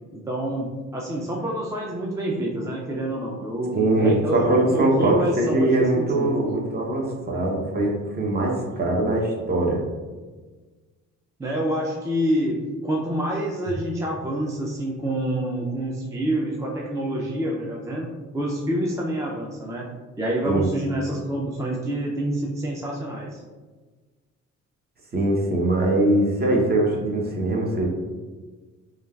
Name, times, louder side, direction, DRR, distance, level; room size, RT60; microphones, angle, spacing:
voice 1, 0.1-6.3 11.4-19.9 20.2-23.4, right 1 dB, 10° right, -3 dB, 0.3 m, -27 dB
voice 2, 3.7-9.8 20.5-20.6 25.1-27.9, right 2 dB, 35° right, -1 dB, 0.7 m, -22 dB
3.1 x 2.3 x 2.2 m, 1.3 s
cardioid pair, 90°, 30 cm